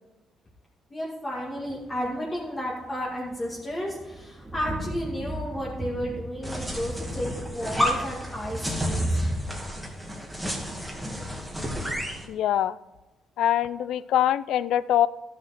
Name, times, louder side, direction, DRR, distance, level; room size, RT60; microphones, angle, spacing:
voice 1, 0.9-9.1, equal, 25° left, -5 dB, 2.0 m, -32 dB
sound 1, 1.6-2.1 3.0-9.4, right 1 dB, 20° right, 1.3 m, -34 dB
sound 2, 6.4-12.3, equal, 5° right, 1.9 m, -31 dB
voice 2, 12.3-12.8 13.4-15.1, left 11 dB, 80° left, 18 dB, 0.3 m, -23 dB
12.5 x 6.5 x 4.3 m, 1.1 s
cardioid pair, 90°, 0 cm